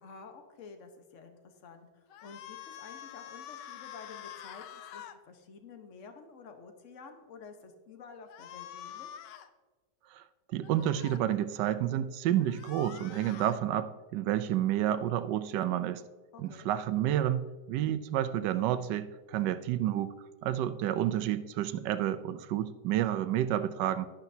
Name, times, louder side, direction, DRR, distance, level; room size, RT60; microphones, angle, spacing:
voice 1, 0.0-9.1 16.3-16.7, left 4 dB, 50° left, 6 dB, 1.3 m, -51 dB
sound 1, 2.1-5.2 8.3-9.5 10.6-11.2 12.4-13.6, left 10 dB, 85° left, 1.3 m, -46 dB
voice 2, 10.5-16.0 16.4-20.2 20.4-24.1, right 11 dB, 90° right, 13 dB, 1.2 m, -30 dB
11.5 x 11.5 x 2.7 m, 1.3 s
omnidirectional pair, 1.8 m